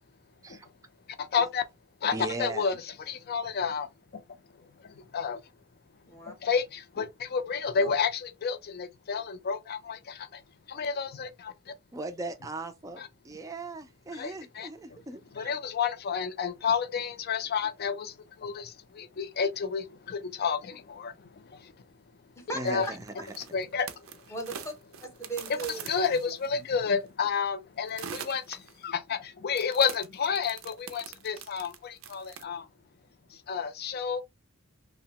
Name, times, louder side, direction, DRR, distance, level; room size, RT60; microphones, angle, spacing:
voice 1, 1.2-1.6 2.0-4.2 4.6-5.4 6.3-10.4 10.7-11.5 13.0-13.1 14.1-15.0 15.3-21.7 22.6-22.9 23.5-24.1 25.9-32.7 33.3-34.2, left 6 dB, 50° left, 0.4 m, -31 dB
voice 2, 2.1-2.7 7.8-7.9 11.9-15.5 22.5-23.0, right 2 dB, 15° right, 0.4 m, -38 dB
voice 3, 6.0-6.3 22.4-22.9 24.3-24.7 25.0-26.0, right 2 dB, 15° left, 0.7 m, -37 dB
sound 1, 22.6-26.7 27.9-28.9 29.5-32.4, right 7 dB, 75° right, 0.5 m, -43 dB
2.8 x 2.1 x 2.8 m
head